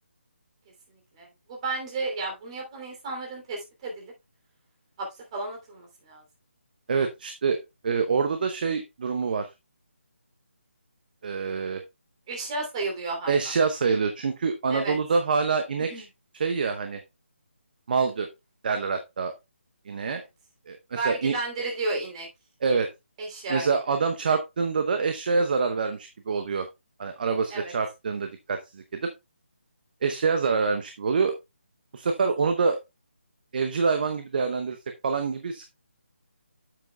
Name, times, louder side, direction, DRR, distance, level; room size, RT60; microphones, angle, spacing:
voice 1, 0.9-4.1 5.0-6.2 12.3-13.5 14.7-14.9 15.9-16.1 20.0-20.2 20.9-22.3 23.2-23.7 27.5-27.7, right 3 dB, 30° right, 1 dB, 2.9 m, -33 dB
voice 2, 6.9-7.6 7.8-9.5 11.2-11.8 13.3-15.9 16.4-17.0 17.9-18.3 18.6-19.3 19.9-20.2 20.7-21.3 22.6-22.9 23.5-26.7 27.0-29.0 30.0-31.3 31.9-32.8 33.5-34.8 35.0-35.7, right 5 dB, 45° right, 7 dB, 0.8 m, -26 dB
9.0 x 7.6 x 2.3 m, 0.23 s
figure-of-eight pair, 155°, 7 cm